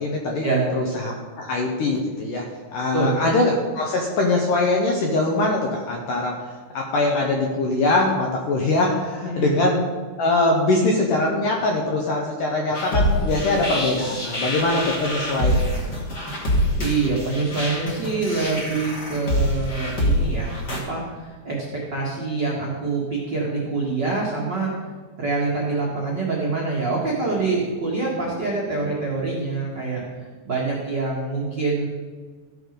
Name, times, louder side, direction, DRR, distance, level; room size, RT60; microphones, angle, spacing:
voice 1, 0.0-0.5 0.8-2.5 2.7-6.4 6.7-9.8 10.2-15.8 16.3-16.4, left 2 dB, 75° left, 0 dB, 2.0 m, -22 dB
voice 2, 9.2-9.6 16.8-24.7 25.2-30.0 30.4-31.9, right 3 dB, 80° right, -4 dB, 1.0 m, -25 dB
sound 1, 12.7-20.8, equal, 40° left, 1.5 m, -25 dB
15.5 x 6.4 x 5.2 m, 1.5 s
omnidirectional pair, 5.1 m